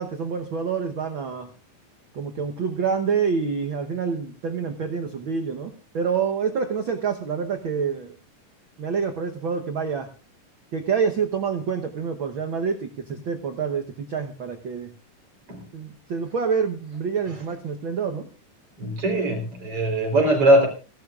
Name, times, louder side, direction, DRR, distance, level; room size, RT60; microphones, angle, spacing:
voice 1, 0.0-1.5 2.1-8.2 8.8-10.1 10.7-14.9 15.7-18.3, right 6 dB, 85° right, 6 dB, 1.1 m, -27 dB
voice 2, 18.8-20.7, right 1 dB, 45° right, 4 dB, 4.7 m, -20 dB
27.0 x 12.0 x 2.4 m, 0.33 s
omnidirectional pair, 3.9 m